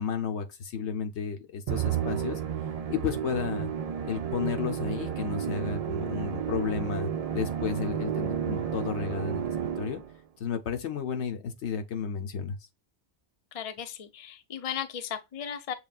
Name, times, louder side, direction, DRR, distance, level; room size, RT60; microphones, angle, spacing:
voice 1, 0.0-2.4 2.9-3.7 4.0-10.0 10.4-12.6, left 7 dB, 85° left, 1.1 m, -32 dB
Musical instrument, 1.7-10.2, right 9 dB, 55° right, 0.4 m, -32 dB
voice 2, 13.5-15.7, left 8 dB, 40° left, 0.6 m, -36 dB
6.7 x 3.2 x 2.3 m
omnidirectional pair, 1.1 m